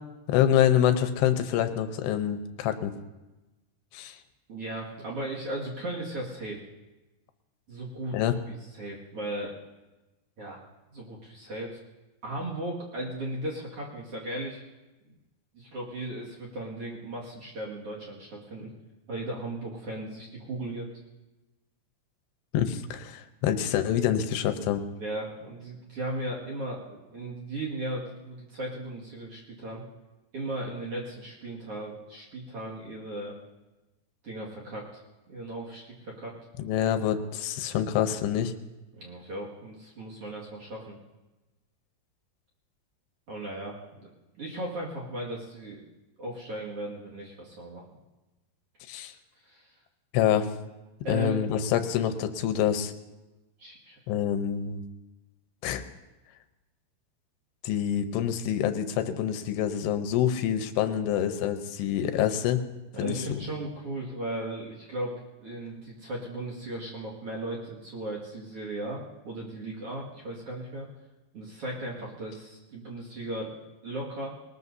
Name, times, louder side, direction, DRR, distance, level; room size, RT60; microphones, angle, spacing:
voice 1, 0.3-3.0 3.9-4.2 8.1-8.3 22.5-24.8 36.6-38.5 48.9-49.1 50.1-50.5 51.1-52.9 54.1-54.8 55.6-55.8 57.6-62.6 63.0-63.2, left 10 dB, 80° left, 8 dB, 2.9 m, -26 dB
voice 2, 4.5-6.6 7.7-8.2 8.5-9.5 10.4-10.6 10.9-11.8 12.2-14.6 15.5-18.7 19.1-20.9 25.0-29.8 30.3-33.4 34.2-35.0 35.3-36.3 38.9-41.0 43.3-44.1 44.4-45.9 46.2-47.8 49.4-49.7 51.0-51.5 53.6-54.0 62.9-65.1 65.4-70.9 71.3-74.3, right 1 dB, 45° right, -3 dB, 2.4 m, -36 dB
22.0 x 19.5 x 2.7 m, 1.1 s
omnidirectional pair, 4.8 m